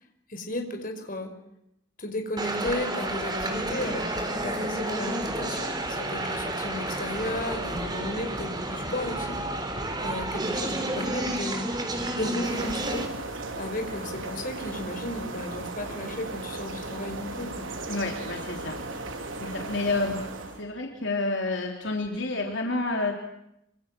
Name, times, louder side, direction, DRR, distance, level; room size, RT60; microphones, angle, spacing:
voice 1, 0.3-1.3 2.0-9.4 10.0-11.7 12.2-13.1 13.6-17.7, left 1 dB, 45° left, 5 dB, 5.3 m, -34 dB
sound 1, 2.4-13.1, right 1 dB, 20° right, 4.1 m, -30 dB
sound 2, 12.4-20.6, right 2 dB, 80° right, 4.2 m, -36 dB
voice 2, 17.9-18.8 19.4-20.2 20.6-23.2, left 2 dB, 65° left, 2 dB, 3.6 m, -29 dB
27.5 x 26.5 x 7.7 m, 0.80 s
head